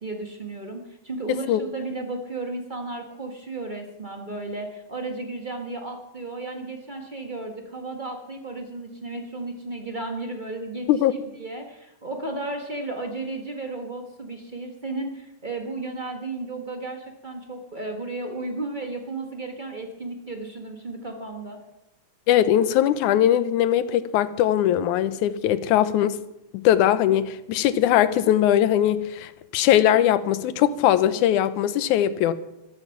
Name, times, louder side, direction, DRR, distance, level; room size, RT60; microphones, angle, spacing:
voice 1, 0.0-10.9 11.3-21.6, right 2 dB, 55° right, 0.5 m, -34 dB
voice 2, 22.3-26.2 26.5-32.3, left 11 dB, 80° left, 2.2 m, -20 dB
13.5 x 13.0 x 5.8 m
omnidirectional pair, 3.5 m